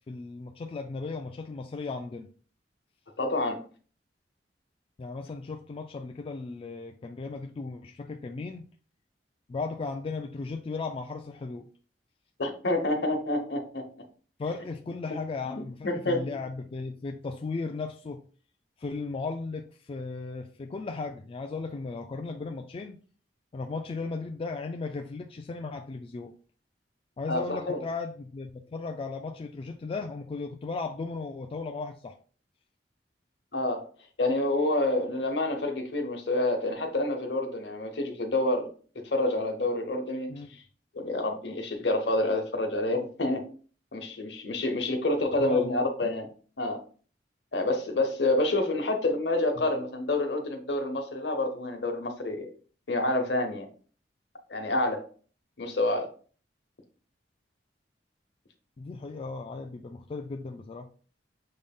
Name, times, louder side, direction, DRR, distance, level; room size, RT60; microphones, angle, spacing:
voice 1, 0.1-2.3 5.0-8.7 9.5-11.7 14.4-18.2 18.8-23.0 23.5-26.3 27.2-32.2 40.3-40.6 45.4-46.1 49.6-49.7 58.8-60.9, left 4 dB, 30° left, 0.3 m, -36 dB
voice 2, 3.2-3.6 12.4-13.9 15.5-16.2 27.3-27.8 33.5-33.8 34.2-38.7 39.0-40.3 40.9-43.5 43.9-46.3 46.6-46.8 47.5-52.5 52.9-53.7 54.5-55.0 55.6-56.1, left 2 dB, 70° left, 1.0 m, -28 dB
6.5 x 3.6 x 2.2 m
head